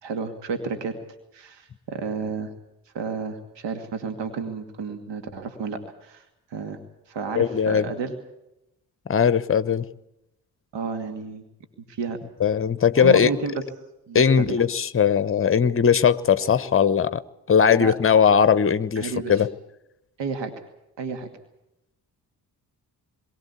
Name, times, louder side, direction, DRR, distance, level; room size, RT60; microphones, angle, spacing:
voice 1, 0.0-1.0 1.3-2.5 2.9-6.3 6.5-6.8 7.1-8.1 10.7-11.4 11.9-12.2 13.0-13.6 14.1-14.6 17.8-17.9 19.0-19.3 20.2-20.5 21.0-21.3, right 5 dB, 60° right, 8 dB, 2.3 m, -31 dB
voice 2, 7.3-7.9 9.1-9.9 12.4-13.3 14.1-17.2 17.5-19.5, left 7 dB, 25° left, 16 dB, 1.0 m, -19 dB
22.0 x 16.5 x 8.3 m, 0.86 s
hypercardioid pair, 40°, 48 cm